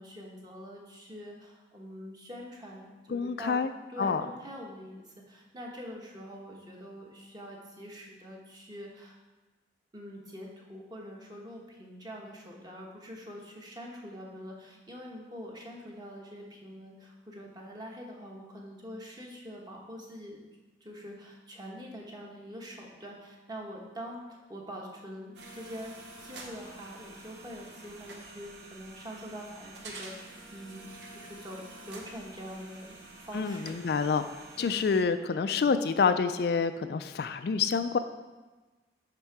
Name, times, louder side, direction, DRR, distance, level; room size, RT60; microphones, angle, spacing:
voice 1, 0.0-3.6 3.9-9.2 9.9-20.4 20.8-32.9 33.2-33.8 34.5-34.9, equal, 20° right, -1 dB, 1.1 m, -44 dB
voice 2, 3.1-3.7 4.0-4.2 33.3-38.0, left 5 dB, 60° left, 10 dB, 0.3 m, -28 dB
sound 1, 25.3-35.0, right 2 dB, 70° right, 1.0 m, -48 dB
11.0 x 3.7 x 4.7 m, 1.2 s
head